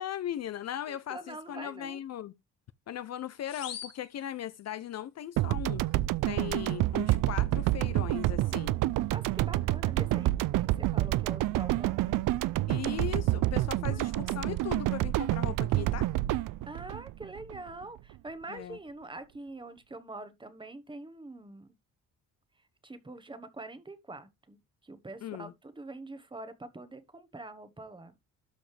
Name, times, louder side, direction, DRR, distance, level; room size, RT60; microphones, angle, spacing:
voice 1, 0.0-2.3 2.9-5.8 6.3-8.8 12.7-16.1 18.5-18.8 25.2-25.5, left 11 dB, 50° left, 0.5 m, -38 dB
voice 2, 0.9-2.0 9.1-12.2 13.8-14.5 16.7-21.7 22.8-24.6 24.8-28.1, right 2 dB, 15° right, 1.2 m, -45 dB
sound 1, 3.5-5.0, left 9 dB, 80° left, 2.7 m, -45 dB
sound 2, 5.4-17.8, right 16 dB, 70° right, 0.5 m, -28 dB
12.5 x 5.0 x 3.3 m
cardioid pair, 135°, 34 cm